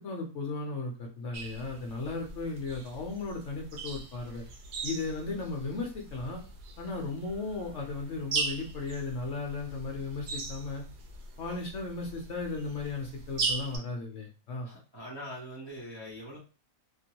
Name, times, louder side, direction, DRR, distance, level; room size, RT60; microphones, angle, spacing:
voice 1, 0.0-4.4 4.8-6.4 6.8-10.8 11.4-14.7, left 3 dB, 60° left, 1 dB, 0.9 m, -36 dB
sound 1, 1.3-13.8, right 3 dB, 85° right, 1.2 m, -39 dB
voice 2, 14.6-16.4, equal, 25° right, -6 dB, 0.6 m, -42 dB
2.9 x 2.6 x 2.8 m, 0.34 s
omnidirectional pair, 1.6 m